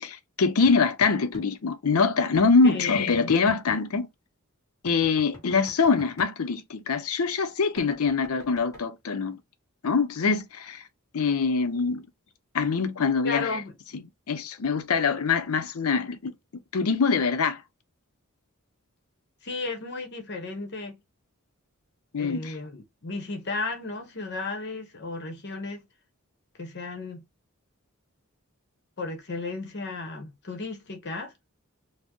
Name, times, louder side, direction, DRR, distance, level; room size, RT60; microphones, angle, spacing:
voice 1, 0.0-4.1 4.8-9.4 9.8-10.8 11.1-12.1 12.5-13.6 13.9-16.3 16.7-17.6 22.1-22.5, left 4 dB, 80° left, 0.6 m, -24 dB
sound 1, 0.7-1.5 2.3-3.8 4.9-6.3 7.8-8.8, equal, 15° left, 1.6 m, -45 dB
voice 2, 13.2-13.7 19.4-21.0 22.2-25.8 26.6-27.2 29.0-31.3, left 3 dB, 50° left, 1.0 m, -34 dB
4.2 x 2.1 x 2.9 m
head